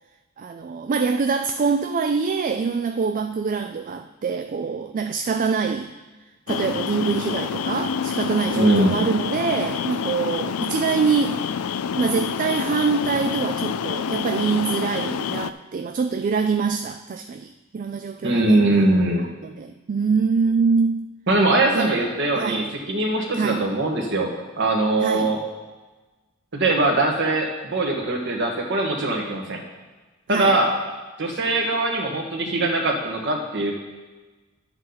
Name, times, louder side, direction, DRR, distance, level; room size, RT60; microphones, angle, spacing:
voice 1, 0.4-5.9 6.5-11.4 12.0-18.7 19.4-21.1 21.7-21.9 22.4-22.6 23.4-23.7 25.0-25.3 30.3-30.6, right 5 dB, 40° right, 8 dB, 0.3 m, -24 dB
sound 1, 6.5-15.5, left 7 dB, 90° left, 0.4 m, -27 dB
voice 2, 8.5-9.0 18.2-19.3 21.3-25.4 26.5-29.6 30.3-30.7 31.2-33.7, right 2 dB, 60° right, 1 dB, 1.6 m, -21 dB
11.5 x 7.9 x 4.0 m, 1.2 s
head